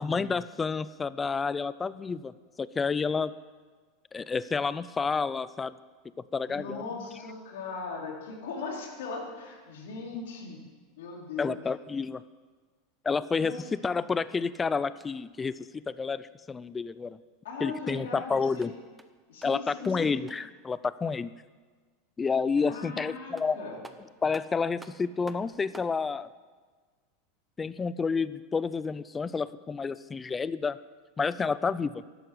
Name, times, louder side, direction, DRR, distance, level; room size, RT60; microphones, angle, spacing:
voice 1, 0.0-2.3 2.6-3.3 4.1-5.7 6.3-6.8 11.4-12.2 13.0-17.2 17.6-18.7 19.4-21.3 22.2-23.6 24.2-26.3 27.6-30.8 31.2-32.0, left 5 dB, 15° left, 16 dB, 0.5 m, -30 dB
voice 2, 6.5-10.6 11.0-11.7 13.4-13.7 17.4-18.7 19.3-20.1 22.6-23.8, left 4 dB, 85° left, -2 dB, 4.5 m, -39 dB
sound 1, 14.1-15.4 18.4-20.6 22.9-23.0 23.4-26.0, right 2 dB, 10° right, 0.9 m, -52 dB
13.0 x 11.5 x 8.0 m, 1.4 s
supercardioid pair, 130°, 0 cm